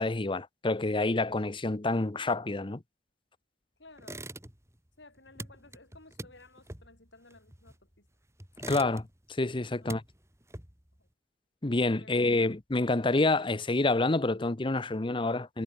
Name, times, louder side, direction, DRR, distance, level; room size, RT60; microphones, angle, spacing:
voice 1, 0.0-2.8 8.7-9.1 9.4-10.0 11.6-15.6, left 2 dB, 30° left, 0.8 m, -28 dB
voice 2, 3.8-4.3 5.0-8.1 9.8-10.1 11.0-11.1 12.0-12.5, left 2 dB, 75° left, 5.8 m, -56 dB
sound 1, 4.0-4.8 5.0-8.0 8.4-9.3 9.6-11.0, right 2 dB, 15° right, 3.5 m, -44 dB
head